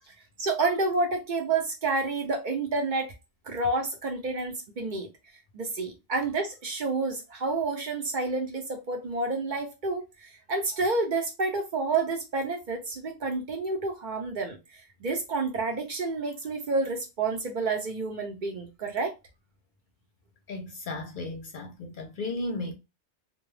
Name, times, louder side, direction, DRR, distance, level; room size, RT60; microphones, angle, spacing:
voice 1, 0.4-3.1 3.5-5.1 5.5-19.1, right 3 dB, 55° right, 0.7 m, -29 dB
voice 2, 20.5-22.7, left 2 dB, 60° left, 0.6 m, -35 dB
2.3 x 2.2 x 3.1 m
omnidirectional pair, 1.1 m